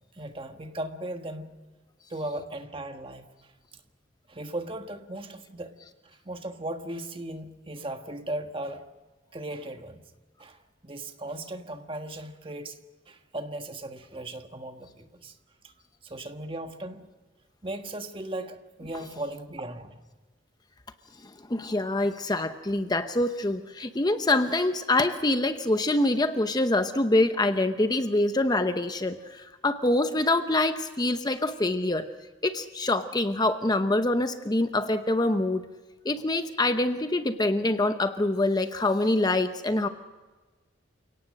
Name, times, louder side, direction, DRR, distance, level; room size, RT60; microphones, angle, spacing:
voice 1, 0.1-1.6 2.1-3.3 4.3-5.7 6.0-8.8 9.3-10.0 10.4-12.8 13.1-15.3 15.6-15.7 16.0-17.1 17.6-20.0, right 1 dB, 30° right, 6 dB, 1.5 m, -37 dB
voice 2, 21.5-32.1 32.4-35.6 36.0-39.9, left 2 dB, 20° left, 9 dB, 0.8 m, -25 dB
29.5 x 18.0 x 6.5 m, 1.3 s
head